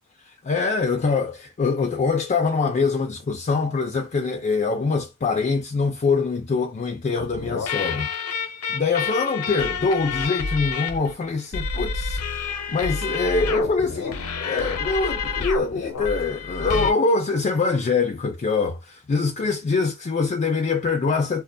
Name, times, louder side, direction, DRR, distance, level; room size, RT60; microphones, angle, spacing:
voice 1, 0.4-8.1 8.7-21.4, left 4 dB, 35° left, 0.3 m, -24 dB
sound 1, 7.2-16.9, left 5 dB, 80° left, 0.5 m, -29 dB
2.3 x 2.1 x 2.5 m
head